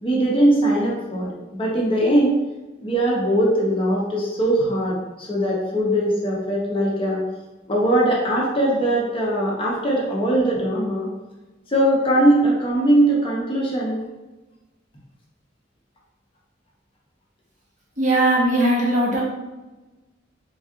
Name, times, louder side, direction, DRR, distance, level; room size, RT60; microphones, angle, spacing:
voice 1, 0.0-2.4 2.8-7.2 7.7-11.1 11.7-14.0, right 1 dB, 30° left, -4 dB, 0.9 m, -20 dB
voice 2, 18.0-19.2, right 1 dB, 40° right, -4 dB, 1.2 m, -19 dB
3.6 x 3.0 x 3.6 m, 1.1 s
head